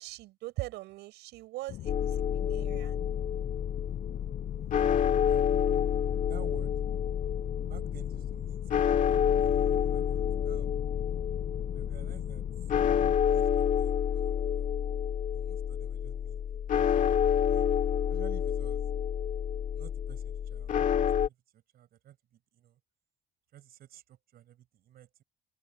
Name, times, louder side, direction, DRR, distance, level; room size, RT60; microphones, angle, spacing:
voice 1, 0.0-3.0, right 18 dB, 90° right, 7.0 m, -41 dB
sound 1, 1.7-13.2, left 14 dB, 70° left, 6.3 m, -41 dB
sound 2, 1.9-21.3, left 8 dB, 50° left, 1.9 m, -29 dB
voice 2, 5.2-5.5 6.3-6.7 7.7-10.7 11.7-12.5 13.2-14.7 15.3-16.4 16.7-16.8 17.4-17.7 18.1-18.9 19.7-22.2 22.5-22.8 23.5-25.2, right 12 dB, 65° right, 6.1 m, -52 dB
cardioid pair, 110°, 17 cm